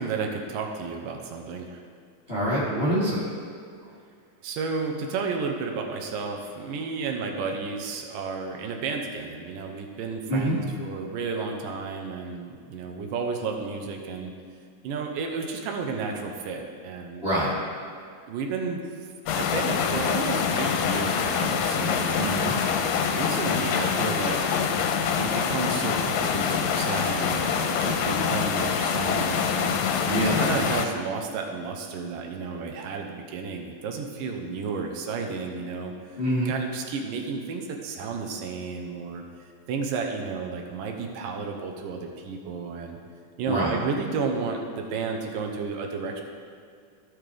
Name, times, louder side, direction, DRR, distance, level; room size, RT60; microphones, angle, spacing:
voice 1, 0.0-1.8 4.4-14.3 14.8-17.2 18.3-18.8 19.3-22.9 23.2-24.4 25.0-29.8 30.3-35.9 36.5-39.2 39.7-43.0 43.4-46.2, right 4 dB, 85° right, 3 dB, 2.5 m, -32 dB
voice 2, 2.3-3.2 10.3-10.6 17.2-17.5 22.2-22.5 30.0-30.4 36.2-36.5 43.5-43.8, right 1 dB, 20° left, -10 dB, 1.7 m, -25 dB
sound 1, 19.3-30.9, left 6 dB, 85° left, 2.3 m, -25 dB
16.0 x 6.4 x 3.4 m, 2.2 s
omnidirectional pair, 3.9 m